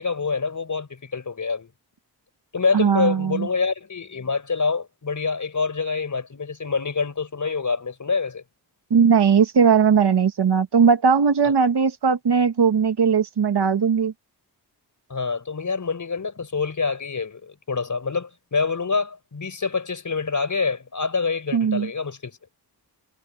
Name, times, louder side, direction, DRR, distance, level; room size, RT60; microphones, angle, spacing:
voice 1, 0.0-1.7 2.5-8.4 15.1-22.4, left 4 dB, 50° left, 4.9 m, -26 dB
voice 2, 2.7-3.5 8.9-14.1 21.5-21.9, right 6 dB, 85° right, 1.7 m, -18 dB
wide cardioid pair, 105°, 39 cm